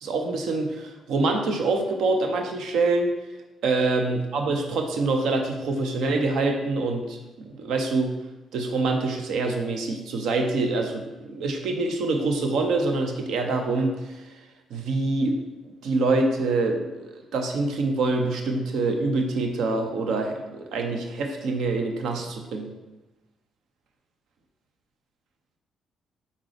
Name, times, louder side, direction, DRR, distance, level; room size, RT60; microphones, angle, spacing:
voice 1, 0.0-3.1 3.6-8.1 8.5-14.2 14.7-15.4 15.8-22.7, right 3 dB, 70° right, 3 dB, 0.6 m, -25 dB
4.0 x 3.7 x 3.3 m, 1.0 s
hypercardioid pair, 50°, 0 cm